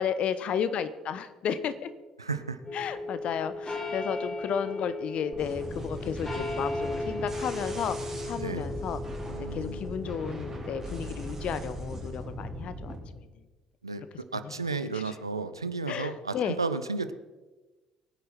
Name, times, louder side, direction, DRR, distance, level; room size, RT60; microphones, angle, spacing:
voice 1, 0.0-1.9 2.7-9.0 9.5-13.4 14.3-14.6 14.9-15.2 15.9-16.6, left 8 dB, 50° left, 13 dB, 1.0 m, -33 dB
voice 2, 2.2-2.6 8.4-8.7 9.3-9.8 13.8-14.0 14.3-17.1, right 4 dB, 90° right, 12 dB, 0.6 m, -33 dB
sound 1, 2.6-11.4, left 2 dB, 20° left, 3.6 m, -37 dB
sound 2, 5.3-13.0, right 1 dB, 20° right, 4.9 m, -38 dB
23.0 x 9.6 x 4.3 m, 1.2 s
figure-of-eight pair, 50°, 2 cm